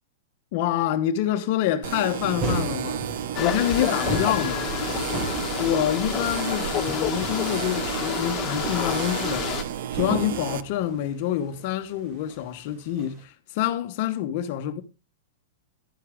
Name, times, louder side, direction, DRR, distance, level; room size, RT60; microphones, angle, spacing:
voice 1, 0.5-3.1 3.4-4.7 5.6-9.5 9.9-14.8, left 11 dB, 45° left, 1.0 m, -26 dB
sound 1, 1.8-10.6, right 10 dB, 55° right, 0.7 m, -32 dB
sound 2, 2.2-13.2, right 2 dB, 30° right, 2.7 m, -35 dB
sound 3, 3.3-9.6, left 10 dB, 20° left, 1.6 m, -30 dB
11.5 x 9.9 x 3.5 m
supercardioid pair, 160°, 0 cm